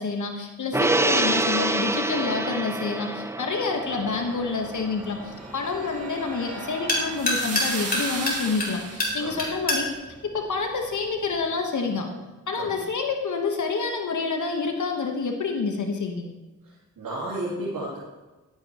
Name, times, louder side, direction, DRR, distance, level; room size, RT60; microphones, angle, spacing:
voice 1, 0.0-9.9 10.3-12.1 12.5-16.3, left 4 dB, 65° left, 3 dB, 1.3 m, -28 dB
Gong, 0.7-7.3 7.7-7.8, right 2 dB, 10° right, 0.5 m, -28 dB
sound 1, 3.8-11.4, left 1 dB, 25° left, 3.2 m, -31 dB
sound 2, 4.6-9.3, right 3 dB, 45° right, 1.8 m, -36 dB
voice 2, 16.6-18.0, right 1 dB, 85° right, -9 dB, 2.8 m, -33 dB
11.5 x 8.6 x 3.1 m, 1.2 s
cardioid pair, 50°, 33 cm